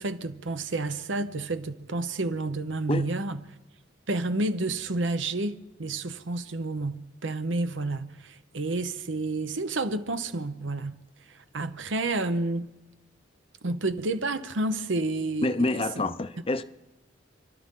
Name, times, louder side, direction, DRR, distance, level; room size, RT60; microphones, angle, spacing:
voice 1, 0.0-3.4 4.1-11.0 11.3-12.7 13.6-16.1, right 2 dB, 75° right, 0.9 m, -30 dB
voice 2, 15.4-16.6, left 2 dB, 30° left, 0.6 m, -27 dB
29.0 x 12.0 x 3.8 m
head